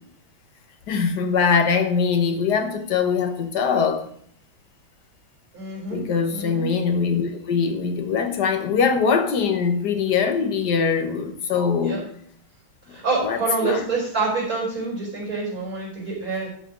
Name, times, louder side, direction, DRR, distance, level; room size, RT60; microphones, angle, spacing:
voice 1, 0.9-4.1 5.9-12.0 13.2-13.8, left 6 dB, 60° left, 6 dB, 1.6 m, -22 dB
voice 2, 5.5-6.0 6.3-6.7 11.8-12.0 12.9-16.5, right 3 dB, 45° right, -4 dB, 5.0 m, -26 dB
13.0 x 4.9 x 6.1 m, 0.65 s
omnidirectional pair, 2.2 m